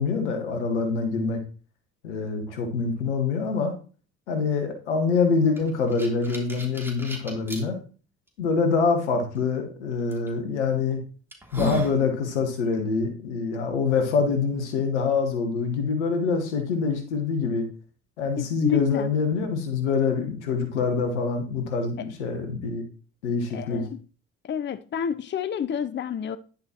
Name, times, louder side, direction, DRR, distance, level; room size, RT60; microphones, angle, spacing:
voice 1, 0.0-1.4 2.0-3.7 4.3-7.8 8.4-11.0 11.5-17.7 18.2-22.8 23.2-23.8, left 4 dB, 85° left, 1.2 m, -25 dB
sound 1, 5.6-7.6 8.3-8.4 10.1-10.3 10.8-10.9 11.3-12.0, equal, 5° right, 3.1 m, -34 dB
voice 2, 18.4-19.1 22.0-22.1 23.5-24.0 24.4-26.4, left 7 dB, 35° left, 0.6 m, -29 dB
10.0 x 7.7 x 2.9 m
hypercardioid pair, 45°, 34 cm